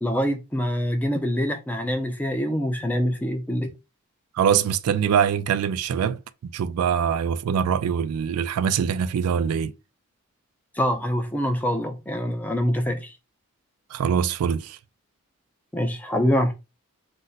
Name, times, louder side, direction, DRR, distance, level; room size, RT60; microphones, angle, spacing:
voice 1, 0.0-3.7 10.7-13.1 15.7-16.5, equal, 10° left, 0.4 m, -25 dB
voice 2, 4.4-6.2 6.5-9.7 13.9-14.8, right 7 dB, 90° right, 0.3 m, -23 dB
2.5 x 2.1 x 3.8 m
head